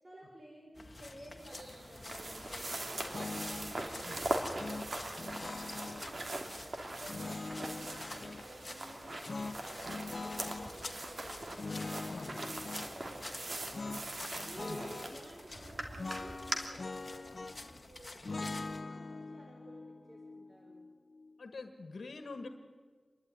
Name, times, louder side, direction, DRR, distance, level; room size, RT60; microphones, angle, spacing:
voice 1, 0.0-6.6 7.0-11.8 12.1-14.1 14.4-20.9, right 1 dB, 35° right, -1 dB, 4.9 m, -53 dB
sound 1, 0.7-18.8, left 2 dB, 40° left, 1.8 m, -50 dB
sound 2, 1.4-16.6, right 2 dB, 60° right, 3.0 m, -41 dB
sound 3, 3.1-3.8 4.6-6.1 7.1-8.5 9.3-10.7 11.6-12.9 13.7-14.1 14.4-15.2 16.0-17.7 18.2-21.3, left 3 dB, 60° left, 0.8 m, -42 dB
voice 2, 21.4-22.5, left 3 dB, 90° left, 6 dB, 1.5 m, -45 dB
28.0 x 12.0 x 9.8 m, 1.5 s
wide cardioid pair, 60°, 0 cm